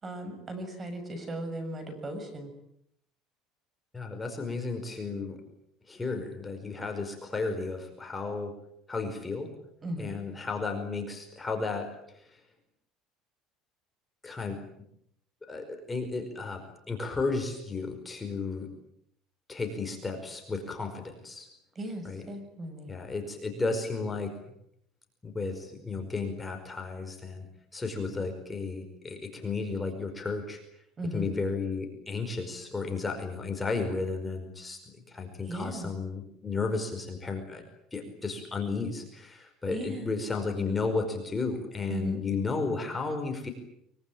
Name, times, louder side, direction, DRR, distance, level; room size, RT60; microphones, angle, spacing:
voice 1, 0.0-2.5 9.8-10.1 21.7-22.9 31.0-31.3 35.5-35.9 39.7-40.1 41.9-42.2, equal, 25° right, 9 dB, 6.7 m, -36 dB
voice 2, 3.9-5.4 5.9-8.5 8.9-9.5 10.0-11.9 14.2-14.6 15.5-18.7 19.5-21.5 22.0-22.2 22.9-24.3 25.2-27.5 27.7-30.6 31.1-34.8 35.1-37.6 37.9-43.5, left 4 dB, 15° left, 4 dB, 5.1 m, -33 dB
24.5 x 24.5 x 9.0 m, 0.73 s
cardioid pair, 130°, 0 cm